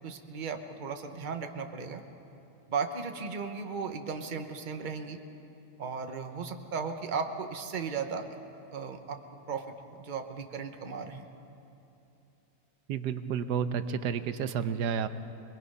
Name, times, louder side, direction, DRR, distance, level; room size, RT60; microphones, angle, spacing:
voice 1, 0.0-2.0 2.7-5.2 5.8-8.3 8.7-9.2 9.5-9.7 10.0-11.3, right 5 dB, 35° right, 6 dB, 1.0 m, -36 dB
voice 2, 12.9-15.1, right 7 dB, 80° right, 11 dB, 1.4 m, -31 dB
25.5 x 21.0 x 5.5 m, 2.9 s
omnidirectional pair, 1.8 m